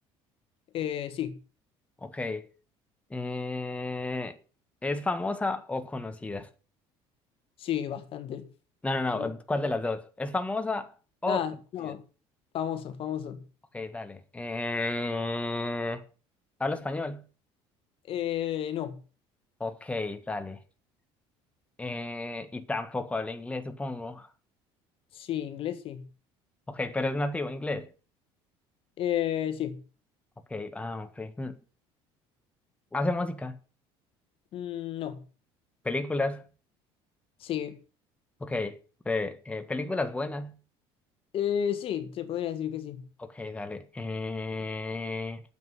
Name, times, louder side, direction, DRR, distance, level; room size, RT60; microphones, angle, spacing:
voice 1, 0.7-1.4 7.6-8.5 9.1-9.3 11.3-12.0 12.5-13.4 18.1-19.0 25.1-26.1 29.0-29.8 34.5-35.2 37.4-37.8 41.3-43.0, left 10 dB, 50° left, 1.7 m, -32 dB
voice 2, 2.0-2.5 3.1-4.4 4.8-6.5 8.8-10.9 11.2-11.4 11.8-11.9 13.7-16.0 16.6-17.2 19.6-20.6 21.8-24.3 26.7-27.9 30.5-31.5 32.9-33.6 35.8-36.5 38.4-38.8 39.0-40.6 43.2-45.4, left 2 dB, 10° left, 1.6 m, -32 dB
9.3 x 7.9 x 9.3 m
cardioid pair, 115°, 12 cm